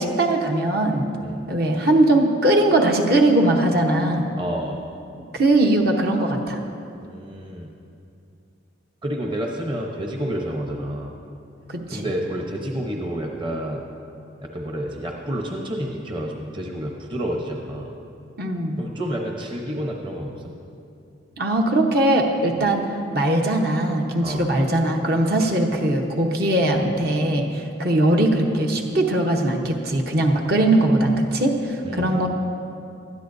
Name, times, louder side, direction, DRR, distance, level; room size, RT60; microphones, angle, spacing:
voice 1, 0.0-1.1 1.5-4.3 5.3-6.6 11.7-12.0 18.4-18.8 21.4-22.8 23.1-32.3, right 1 dB, 55° right, 1 dB, 1.1 m, -20 dB
voice 2, 4.4-4.8 7.0-7.7 9.0-11.1 11.9-13.8 14.4-17.9 18.8-20.5 22.6-22.7 24.2-24.4 31.8-32.2, equal, 25° right, 0 dB, 0.9 m, -29 dB
19.0 x 12.5 x 2.7 m, 2.6 s
head